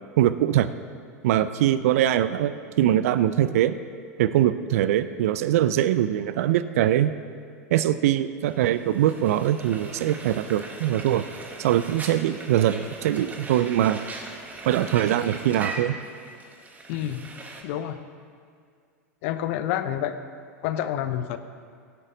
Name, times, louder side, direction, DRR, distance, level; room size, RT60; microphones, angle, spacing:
voice 1, 0.2-0.7 1.2-3.7 4.2-7.1 7.7-11.2 11.6-14.0 14.7-16.0, right 12 dB, 65° right, 13 dB, 0.5 m, -22 dB
Frying (food), 8.5-17.6, right 3 dB, 20° right, 1.5 m, -40 dB
voice 2, 16.9-17.2 17.6-18.0 19.2-20.1 20.6-21.4, left 11 dB, 55° left, 11 dB, 0.8 m, -28 dB
17.5 x 8.2 x 3.8 m, 2.2 s
hypercardioid pair, 95°, 8 cm